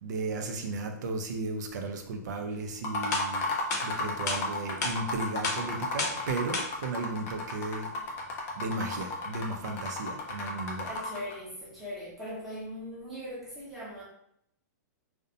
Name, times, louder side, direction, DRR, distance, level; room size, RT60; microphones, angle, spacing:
voice 1, 0.0-7.9 8.6-10.9, right 3 dB, 70° right, 4 dB, 0.5 m, -35 dB
sound 1, 2.6-2.7 3.1-3.2 3.7-3.8 4.3-4.4 4.8-4.9 5.4-5.6 6.0-6.2 6.5-6.6, left 3 dB, 70° left, 0.7 m, -30 dB
sound 2, 2.7-11.4, left 2 dB, 20° left, 0.4 m, -34 dB
voice 2, 8.6-9.0 10.9-14.0, equal, ahead, -9 dB, 0.7 m, -40 dB
2.5 x 2.1 x 2.6 m, 0.74 s
hypercardioid pair, 160°, 10 cm